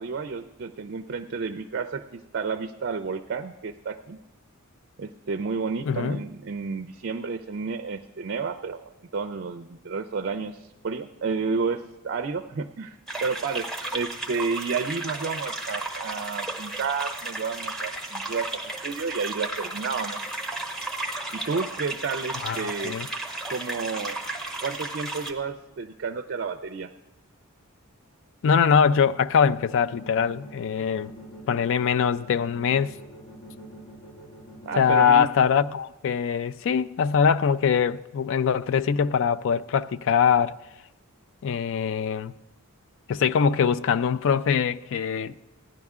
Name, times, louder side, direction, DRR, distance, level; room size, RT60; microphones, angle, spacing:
voice 1, 0.0-4.2 5.0-20.2 21.3-23.0 23.5-24.2 24.6-26.9 34.7-35.3, right 5 dB, 50° right, 0.4 m, -31 dB
voice 2, 5.9-6.2 22.4-23.1 28.4-31.1 31.5-32.9 34.8-40.6 41.4-42.3 43.1-45.3, left 7 dB, 60° left, 0.3 m, -22 dB
sound 1, 13.1-25.3, right 2 dB, ahead, 0.9 m, -34 dB
sound 2, 29.5-35.0, equal, 90° left, 2.6 m, -45 dB
16.0 x 10.5 x 3.6 m
head